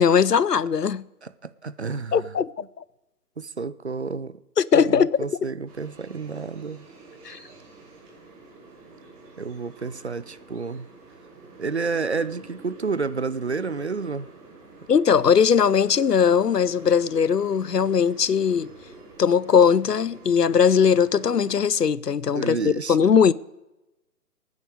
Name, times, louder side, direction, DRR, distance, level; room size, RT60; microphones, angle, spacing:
voice 1, 0.0-1.0 2.1-2.5 2.8-2.9 4.6-5.2 7.2-7.4 14.9-18.7 19.2-23.3, left 7 dB, 85° left, 0.6 m, -19 dB
voice 2, 1.2-2.3 3.4-4.4 4.7-6.9 9.4-10.9 11.6-14.3 22.4-23.1, right 4 dB, 45° right, 0.4 m, -30 dB
sound 1, 5.7-21.6, right 3 dB, 10° right, 1.4 m, -47 dB
20.5 x 9.5 x 4.8 m
figure-of-eight pair, 140°, 47 cm